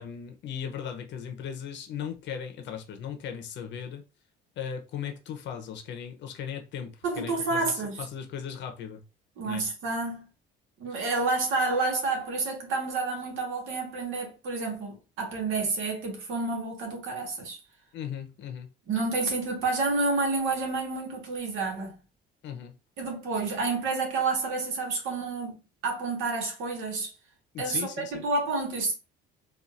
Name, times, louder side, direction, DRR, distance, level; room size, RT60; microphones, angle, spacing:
voice 1, 0.0-4.0 4.6-9.0 9.4-9.6 10.9-11.1 17.9-18.7 22.4-22.7 27.5-28.2, left 8 dB, 60° left, 0.9 m, -37 dB
voice 2, 7.0-8.0 9.4-10.3 10.8-17.6 18.9-22.0 23.0-25.6 25.8-27.1 27.6-28.9, right 3 dB, 75° right, 1.7 m, -29 dB
4.2 x 2.6 x 2.6 m
cardioid pair, 120°, 21 cm